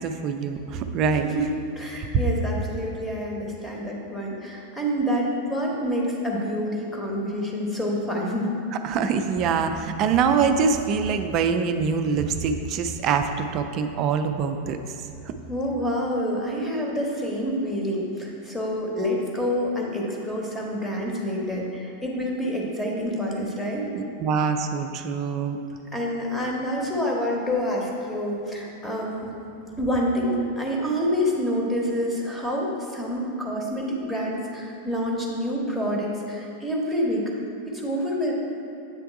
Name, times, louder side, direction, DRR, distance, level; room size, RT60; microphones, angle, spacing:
voice 1, 0.0-1.3 1.9-2.1 8.8-14.9 23.9-25.6, right 6 dB, 35° right, 7 dB, 0.4 m, -24 dB
voice 2, 1.8-8.5 15.5-23.9 25.9-29.3 29.8-37.2 37.7-38.3, equal, 5° left, -2 dB, 1.1 m, -27 dB
8.2 x 3.5 x 4.5 m, 2.6 s
figure-of-eight pair, 90°, 0 cm